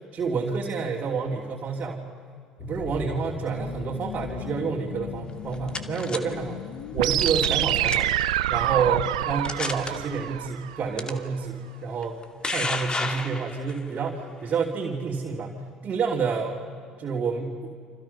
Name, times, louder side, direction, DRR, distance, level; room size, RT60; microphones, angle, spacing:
voice 1, 0.1-2.0 2.6-6.6 6.9-8.1 8.5-15.5 15.8-16.6 17.0-17.7, right 5 dB, 45° right, -2 dB, 3.1 m, -29 dB
sound 1, 2.6-8.1, left 10 dB, 70° left, 1.2 m, -39 dB
sound 2, 5.3-6.2 7.2-7.6 7.9-8.2 8.9-9.0 9.4-9.9 11.0-11.1 12.0-13.8, left 3 dB, 25° left, 2.3 m, -31 dB
sound 3, 7.0-11.0, right 13 dB, 80° right, 0.6 m, -26 dB
30.0 x 26.0 x 5.7 m, 2.3 s
hypercardioid pair, 60°, 4 cm